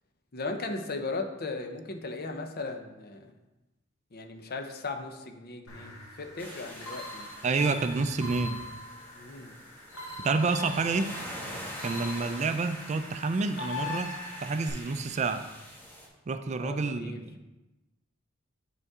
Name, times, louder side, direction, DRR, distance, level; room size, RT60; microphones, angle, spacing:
voice 1, 0.3-3.3 4.1-7.3 9.1-9.5 12.2-12.3 16.6-17.2, left 3 dB, 50° left, 5 dB, 0.7 m, -37 dB
sound 1, 5.7-14.7, left 3 dB, 80° left, 1.5 m, -42 dB
sound 2, 6.4-16.1, equal, 10° left, 1.4 m, -45 dB
voice 2, 7.4-8.6 10.2-11.1 11.8-14.1 14.4-15.4 16.3-17.3, right 4 dB, 35° right, 9 dB, 0.4 m, -28 dB
7.8 x 5.3 x 3.6 m, 1.0 s
head